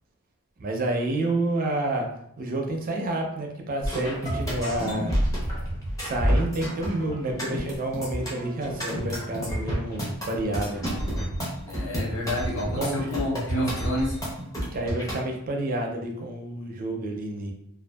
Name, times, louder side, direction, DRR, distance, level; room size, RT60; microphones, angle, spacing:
voice 1, 0.6-2.1 2.4-5.2 6.0-11.3 12.8-13.1 14.7-17.5, right 1 dB, 40° right, 2 dB, 0.4 m, -29 dB
sound 1, 3.8-15.2, equal, 15° left, 0.6 m, -29 dB
voice 2, 11.7-14.2, left 1 dB, 55° left, -3 dB, 0.7 m, -29 dB
2.6 x 2.3 x 2.2 m, 0.74 s
head